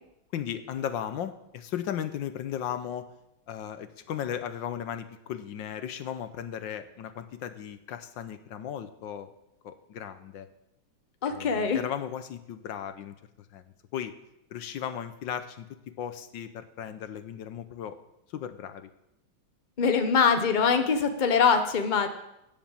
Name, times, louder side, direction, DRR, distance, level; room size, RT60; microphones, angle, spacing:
voice 1, 0.3-3.1 3.5-9.3 9.6-10.5 11.2-13.2 13.5-14.1 14.5-18.0 18.3-18.9, left 9 dB, 75° left, 11 dB, 1.5 m, -36 dB
voice 2, 11.2-11.8 19.8-22.1, left 6 dB, 30° left, 7 dB, 1.0 m, -23 dB
17.0 x 7.3 x 7.4 m, 0.85 s
omnidirectional pair, 2.1 m